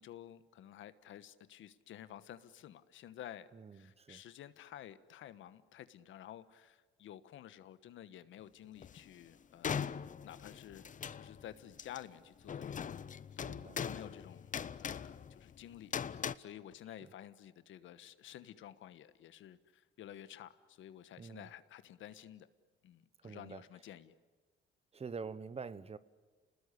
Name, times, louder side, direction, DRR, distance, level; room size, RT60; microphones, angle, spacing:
voice 1, 0.0-9.8 10.2-10.8 11.1-13.0 13.4-14.5 14.8-22.5 22.8-24.1, left 11 dB, 80° left, 1.3 m, -52 dB
voice 2, 3.5-4.2 13.4-13.8 21.2-21.5 23.2-23.6 24.9-26.0, right 5 dB, 30° right, 1.0 m, -46 dB
sound 1, 8.8-9.0 9.6-11.5 11.8-12.0 12.5-16.4, left 7 dB, 40° left, 0.8 m, -41 dB
29.0 x 20.0 x 9.8 m
cardioid pair, 90°, 20 cm